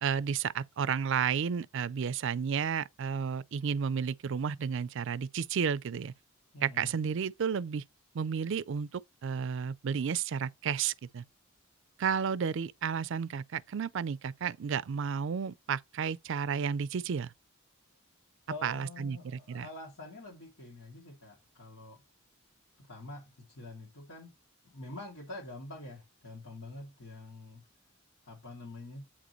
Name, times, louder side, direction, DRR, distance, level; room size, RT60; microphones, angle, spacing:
voice 1, 0.0-6.1 6.6-7.8 8.1-11.2 12.0-17.3 18.6-19.7, right 7 dB, 65° right, 0.4 m, -32 dB
voice 2, 6.5-6.9 18.5-22.0 22.8-24.3 24.7-27.6 28.3-29.0, left 2 dB, 90° left, 2.3 m, -46 dB
8.6 x 5.0 x 3.0 m
head